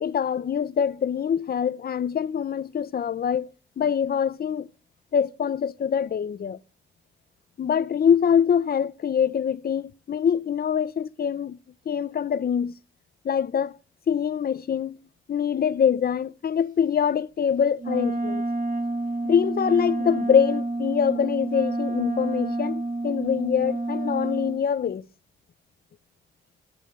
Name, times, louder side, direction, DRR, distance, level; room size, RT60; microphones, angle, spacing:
voice 1, 0.0-3.5 3.8-4.7 5.1-6.6 7.6-11.6 11.9-12.7 13.2-13.7 14.1-15.0 15.3-18.4 19.2-25.0, left 8 dB, 50° left, 0.6 m, -24 dB
Wind instrument woodwind instrument, 17.8-24.6, right 2 dB, 40° right, 2.3 m, -29 dB
26.5 x 10.5 x 2.4 m
cardioid pair, 60°, 21 cm